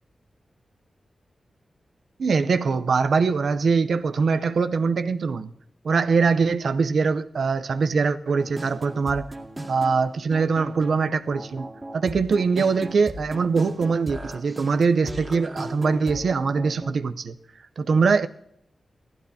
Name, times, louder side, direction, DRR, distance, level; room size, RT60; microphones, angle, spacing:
voice 1, 2.2-5.5 5.8-9.3 9.7-11.7 11.9-17.4 17.8-18.3, right 5 dB, 75° right, 0.7 m, -22 dB
sound 1, 8.4-16.9, right 1 dB, 20° right, 2.1 m, -37 dB
18.0 x 15.0 x 2.8 m
wide cardioid pair, 105°, 0 cm